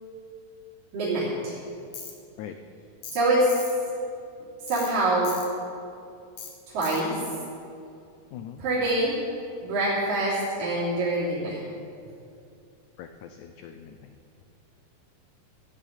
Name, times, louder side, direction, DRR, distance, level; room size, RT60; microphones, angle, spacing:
voice 1, 0.9-1.6 3.1-3.6 4.6-5.3 6.7-7.2 8.6-9.2 9.6-11.6, right 1 dB, 70° right, -10 dB, 4.7 m, -25 dB
Tools, 1.9-2.1 3.0-3.2 3.5-3.7 4.7-4.9 5.2-5.5 6.4-6.5 6.8-7.0, left 7 dB, 65° left, 3.0 m, -39 dB
voice 2, 8.3-8.6 13.0-14.2, left 9 dB, 85° left, 7 dB, 1.7 m, -42 dB
14.5 x 7.1 x 9.1 m, 2.5 s
omnidirectional pair, 4.1 m